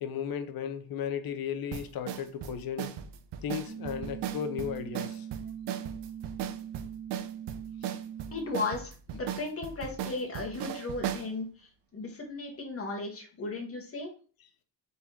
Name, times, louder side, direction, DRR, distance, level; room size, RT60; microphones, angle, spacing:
voice 1, 0.0-2.9 3.4-5.3 7.8-7.9, left 8 dB, 55° left, 0.7 m, -35 dB
sound 1, 1.7-11.3, right 9 dB, 75° right, 0.6 m, -37 dB
sound 2, 3.7-8.6, right 9 dB, 50° right, 1.8 m, -41 dB
voice 2, 8.3-14.1, left 3 dB, 30° left, 1.3 m, -36 dB
4.0 x 3.6 x 2.9 m
cardioid pair, 120°, 43 cm